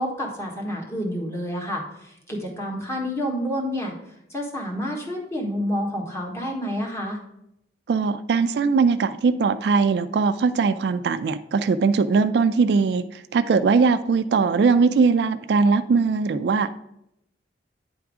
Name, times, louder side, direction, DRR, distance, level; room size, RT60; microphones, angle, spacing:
voice 1, 0.0-3.9 4.3-7.2, equal, 15° left, -1 dB, 1.3 m, -29 dB
voice 2, 7.9-16.7, right 4 dB, 65° right, 12 dB, 0.3 m, -20 dB
9.3 x 3.6 x 4.8 m, 0.81 s
head